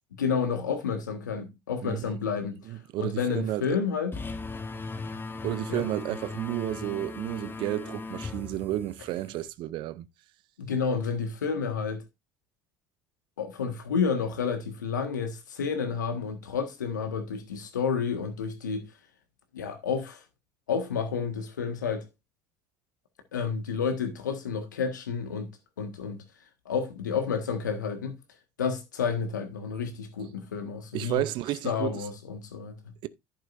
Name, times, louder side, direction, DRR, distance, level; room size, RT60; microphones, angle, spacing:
voice 1, 0.2-2.6 3.0-4.2 5.7-5.8 10.6-12.0 13.4-18.8 19.5-20.2 20.7-22.0 23.3-25.5 25.8-26.2 26.6-28.2 28.6-31.2 31.6-32.9, left 6 dB, 85° left, 1.6 m, -30 dB
voice 2, 2.7-3.8 5.4-10.1 30.9-32.0 33.0-33.1, right 14 dB, 55° right, 0.7 m, -32 dB
sound 1, 4.1-9.5, left 3 dB, 20° left, 1.4 m, -38 dB
11.0 x 8.6 x 2.6 m
hypercardioid pair, 65°, 10 cm